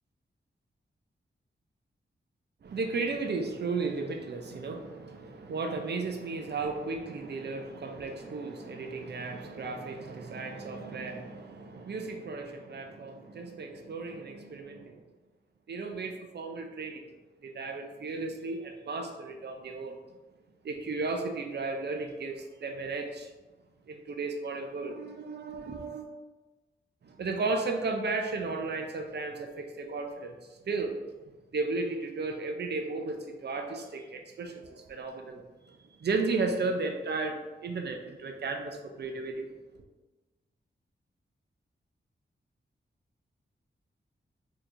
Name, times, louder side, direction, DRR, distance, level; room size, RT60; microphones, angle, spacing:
voice 1, 2.6-15.0 15.7-17.0 17.4-20.0 20.6-23.3 23.9-26.1 27.0-31.0 31.5-39.5, right 3 dB, 55° right, 3 dB, 0.5 m, -34 dB
4.3 x 2.8 x 2.5 m, 1.2 s
wide cardioid pair, 95°, 20 cm